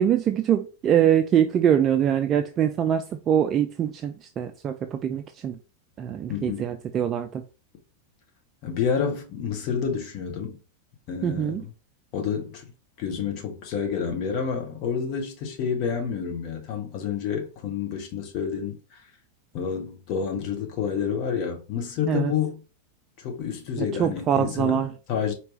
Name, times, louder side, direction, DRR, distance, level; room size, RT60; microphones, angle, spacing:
voice 1, 0.0-5.6 6.0-7.4 11.2-11.7 22.0-22.3 23.8-24.9, right 9 dB, 30° right, 0.3 m, -23 dB
voice 2, 6.3-6.6 8.6-10.6 11.1-11.5 12.1-12.7 13.0-19.0 19.5-22.6 23.2-24.8 25.1-25.3, left 7 dB, 40° left, 1.0 m, -29 dB
4.4 x 2.9 x 3.2 m
figure-of-eight pair, 90°, 0 cm